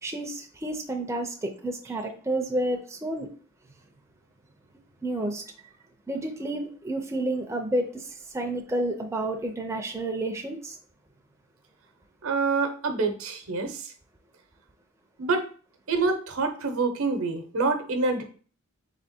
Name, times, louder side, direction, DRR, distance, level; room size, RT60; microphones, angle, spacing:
voice 1, 0.0-3.3 5.0-5.4 6.1-10.8, right 1 dB, 15° right, 0.5 m, -30 dB
voice 2, 12.2-13.9 15.2-15.5 15.9-18.2, right 4 dB, 70° right, 0.9 m, -26 dB
3.5 x 3.4 x 4.3 m
head